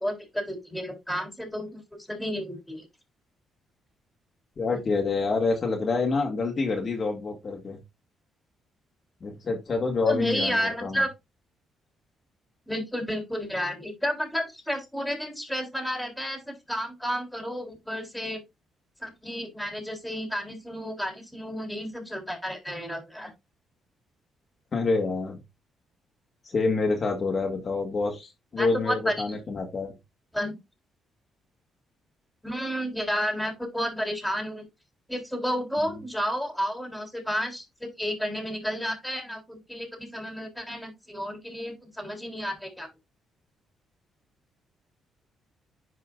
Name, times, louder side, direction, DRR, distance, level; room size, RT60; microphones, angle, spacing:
voice 1, 0.0-2.9 10.1-11.1 12.7-18.4 19.0-23.3 28.6-29.2 30.3-30.6 32.4-34.7 35.1-42.9, equal, ahead, 2 dB, 3.5 m, -31 dB
voice 2, 4.6-7.8 9.2-11.0 24.7-25.4 26.5-29.9, left 3 dB, 40° left, 2 dB, 1.8 m, -27 dB
10.5 x 4.8 x 2.4 m, 0.22 s
cardioid pair, 90°, 0 cm